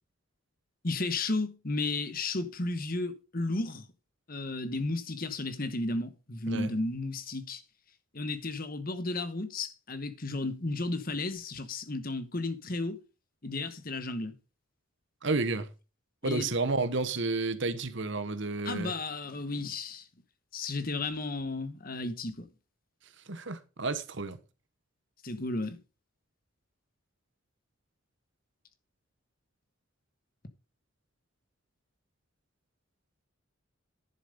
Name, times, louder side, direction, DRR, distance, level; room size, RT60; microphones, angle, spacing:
voice 1, 0.8-3.8 4.3-7.6 8.1-13.0 13.4-14.3 16.2-16.5 18.6-20.1 20.5-22.5 25.2-25.8, left 2 dB, 40° left, 1.2 m, -33 dB
voice 2, 15.2-15.7 16.2-18.9 23.3-24.4, right 3 dB, 55° right, 1.1 m, -31 dB
10.5 x 7.2 x 5.3 m
head